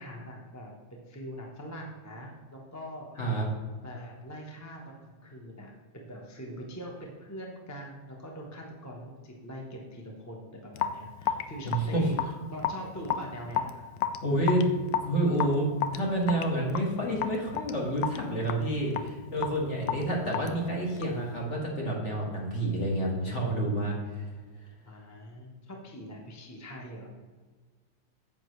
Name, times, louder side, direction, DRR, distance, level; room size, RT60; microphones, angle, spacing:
voice 1, 0.0-3.2 3.8-12.1 12.5-13.8 19.7-19.9 24.8-27.1, equal, 10° left, -1 dB, 0.8 m, -43 dB
Raindrop / Drip, 10.7-21.3, left 10 dB, 85° left, 1.3 m, -33 dB
voice 2, 11.7-12.1 14.2-14.7 15.0-24.3, right 1 dB, 40° left, -2 dB, 2.0 m, -29 dB
9.5 x 7.5 x 3.2 m, 1.4 s
omnidirectional pair, 2.0 m